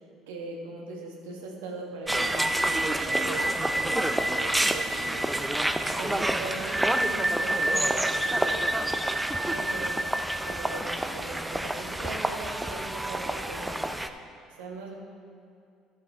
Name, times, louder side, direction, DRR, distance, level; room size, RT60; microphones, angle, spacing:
voice 1, 0.3-5.3 5.8-8.7 9.4-10.2 10.4-13.8 14.6-14.9, right 3 dB, 90° right, -1 dB, 1.4 m, -40 dB
sound 1, 2.1-14.1, right 1 dB, 5° right, 0.5 m, -28 dB
12.5 x 7.5 x 3.6 m, 2.3 s
supercardioid pair, 75°, 0 cm